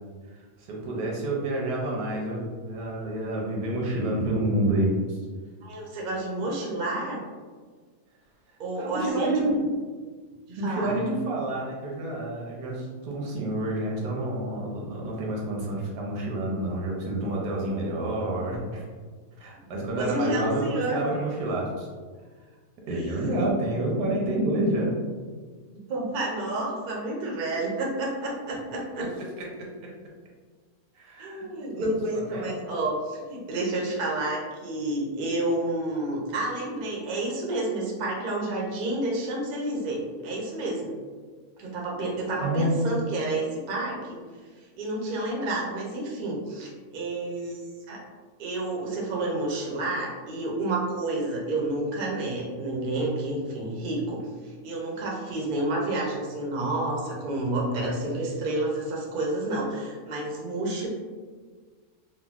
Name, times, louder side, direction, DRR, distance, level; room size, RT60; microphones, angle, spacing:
voice 1, 0.2-5.2 8.7-9.9 10.6-18.9 19.4-21.9 22.9-24.9 29.6-29.9 30.9-31.5 31.7-31.9 32.1-32.7 42.4-42.9, right 1 dB, 90° right, -2 dB, 1.3 m, -28 dB
voice 2, 5.6-7.2 8.6-9.3 10.5-11.0 20.0-21.0 22.9-23.5 25.7-29.1 31.2-40.9 41.6-44.2 44.8-47.6 47.9-48.0 48.4-60.9, right 2 dB, 60° right, -2 dB, 0.5 m, -30 dB
3.7 x 2.0 x 2.3 m, 1.5 s
omnidirectional pair, 1.6 m